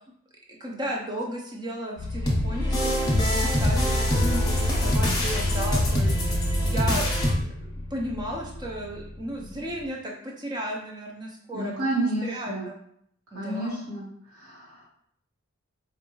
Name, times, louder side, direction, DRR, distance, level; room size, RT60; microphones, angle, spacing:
voice 1, 0.6-6.1 6.6-7.4 7.9-12.7 13.3-13.9, right 1 dB, 20° right, -1 dB, 0.6 m, -34 dB
sound 1, 2.0-9.9, left 2 dB, 80° left, 0.5 m, -30 dB
sound 2, 2.3-7.3, equal, 20° left, 0.7 m, -25 dB
voice 2, 11.5-12.7 13.3-14.0 14.3-14.9, right 2 dB, 80° right, -6 dB, 1.4 m, -30 dB
4.5 x 2.6 x 3.0 m, 0.68 s
head